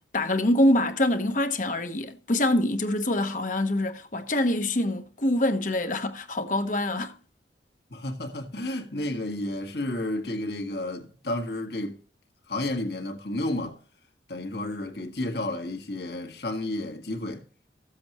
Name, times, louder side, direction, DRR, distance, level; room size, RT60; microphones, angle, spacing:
voice 1, 0.0-7.2, left 1 dB, 45° left, 1.1 m, -25 dB
voice 2, 7.9-12.0 12.5-13.8 14.3-17.5, left 1 dB, 65° left, 1.8 m, -31 dB
15.0 x 7.7 x 3.0 m
head